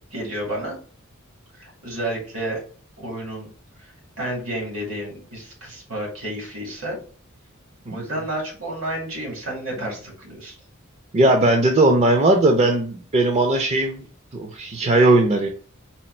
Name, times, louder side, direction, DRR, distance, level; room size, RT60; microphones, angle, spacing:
voice 1, 0.1-0.8 1.5-2.6 3.0-3.5 3.8-3.9 4.2-7.0 7.9-10.6, right 1 dB, 70° right, -2 dB, 2.0 m, -31 dB
voice 2, 11.1-14.0 14.3-15.5, right 2 dB, 30° right, 3 dB, 0.4 m, -18 dB
4.2 x 2.3 x 4.3 m, 0.40 s
head